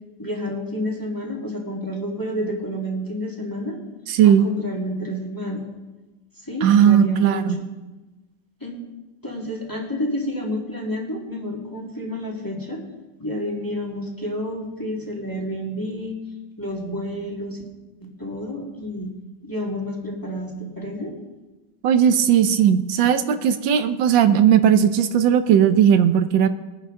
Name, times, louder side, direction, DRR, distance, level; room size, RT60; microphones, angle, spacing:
voice 1, 0.2-3.8 4.2-5.6 6.4-7.5 8.6-8.8 9.2-12.8 13.2-16.2 16.6-17.6 18.2-19.1 19.4-21.1, equal, 10° left, -2 dB, 1.9 m, -29 dB
voice 2, 4.1-4.5 6.6-7.6 21.8-26.5, right 9 dB, 80° right, 10 dB, 1.4 m, -17 dB
21.0 x 9.7 x 3.7 m, 1.2 s
omnidirectional pair, 2.0 m